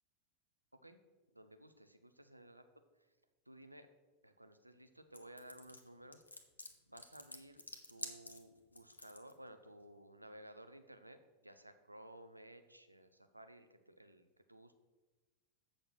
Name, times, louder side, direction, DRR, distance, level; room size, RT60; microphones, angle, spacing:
voice 1, 1.3-2.6 3.0-3.1 3.5-3.9 4.2-6.2 6.9-7.6 7.9-14.7, right 1 dB, 85° right, 9 dB, 0.6 m, -56 dB
sound 1, 5.1-9.3, left 2 dB, 80° left, 0.9 m, -49 dB
7.9 x 6.3 x 5.9 m, 1.2 s
figure-of-eight pair, 90°, 0 cm